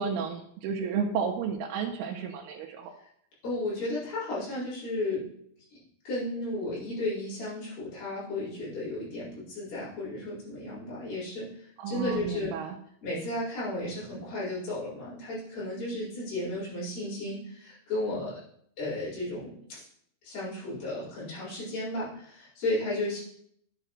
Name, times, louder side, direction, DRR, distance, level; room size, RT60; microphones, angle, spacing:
voice 1, 0.0-2.9 11.8-12.8, right 6 dB, 80° right, 1 dB, 2.5 m, -32 dB
voice 2, 3.4-5.2 5.7-5.8 6.0-11.5 11.9-12.5 13.0-18.3 18.8-19.9 20.2-23.2, left 2 dB, 55° left, -10 dB, 6.2 m, -34 dB
11.0 x 7.7 x 3.1 m, 0.67 s
omnidirectional pair, 5.0 m